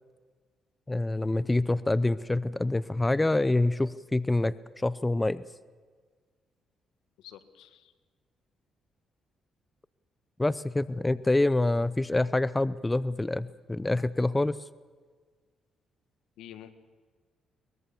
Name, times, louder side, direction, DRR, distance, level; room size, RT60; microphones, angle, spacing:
voice 1, 0.9-5.4 10.4-14.6, left 2 dB, 15° left, 17 dB, 0.6 m, -26 dB
voice 2, 7.2-7.9 16.4-16.7, left 11 dB, 90° left, 11 dB, 1.5 m, -48 dB
23.0 x 20.0 x 7.1 m, 1.5 s
cardioid pair, 90°, 0 cm